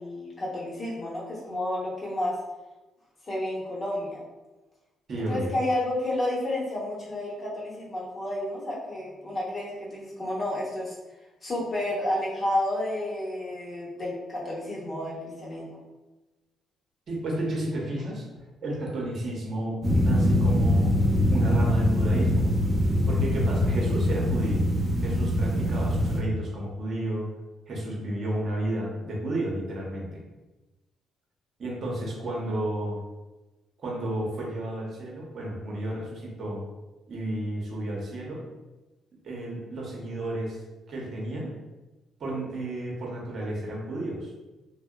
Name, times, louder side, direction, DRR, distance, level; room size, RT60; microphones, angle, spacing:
voice 1, 0.0-2.4 3.2-4.2 5.3-11.0 11.4-15.8, left 1 dB, 35° left, -5 dB, 0.9 m, -31 dB
voice 2, 5.1-5.5 17.1-18.2 18.6-20.9 21.3-22.5 23.1-24.7 25.0-27.3 27.7-30.2 31.6-33.0 33.8-36.6 37.1-38.4 39.2-40.6 40.9-41.5 42.2-44.3, right 1 dB, 55° right, -3 dB, 0.8 m, -32 dB
sound 1, 19.8-26.2, left 1 dB, 20° right, 0.5 m, -23 dB
2.7 x 2.1 x 2.3 m, 1.1 s
cardioid pair, 90°, 0 cm